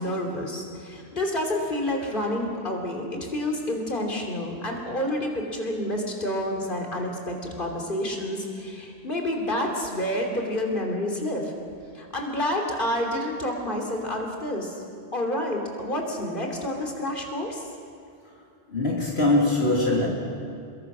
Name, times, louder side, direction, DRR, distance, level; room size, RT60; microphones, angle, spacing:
voice 1, 0.0-11.5 11.9-14.8 15.1-17.6, left 1 dB, 55° left, 1 dB, 3.4 m, -29 dB
voice 2, 18.7-20.1, left 2 dB, 75° left, -2 dB, 3.0 m, -22 dB
29.5 x 22.0 x 6.2 m, 2.4 s
omnidirectional pair, 1.1 m